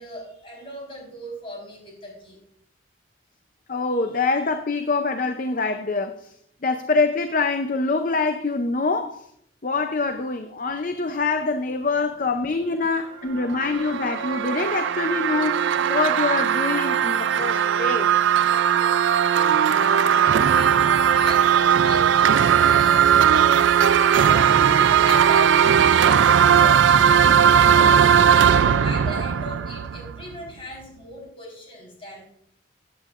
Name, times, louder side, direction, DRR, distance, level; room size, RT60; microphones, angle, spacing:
voice 1, 0.0-2.4 12.0-12.1 12.3-12.4 13.0-13.9 19.8-23.8 24.1-32.2, left 1 dB, 30° left, 4.2 m, -38 dB
voice 2, 3.7-6.3 6.6-9.3 9.6-18.1, left 3 dB, 45° left, 0.6 m, -25 dB
sound 1, 13.4-30.3, right 8 dB, 80° right, 0.4 m, -18 dB
15.5 x 9.3 x 2.5 m
head